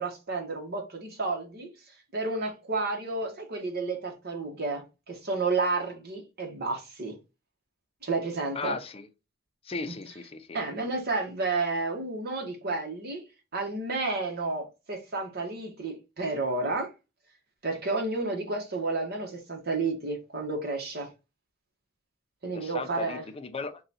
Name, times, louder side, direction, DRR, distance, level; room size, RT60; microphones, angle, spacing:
voice 1, 0.0-1.7 2.1-7.1 8.0-8.8 9.9-10.0 10.5-13.2 13.5-16.9 17.6-21.1 22.4-23.2, right 3 dB, 55° right, 1.1 m, -31 dB
voice 2, 8.5-9.1 9.6-10.6 22.5-23.8, left 3 dB, 30° left, 0.5 m, -36 dB
3.8 x 2.3 x 4.1 m
head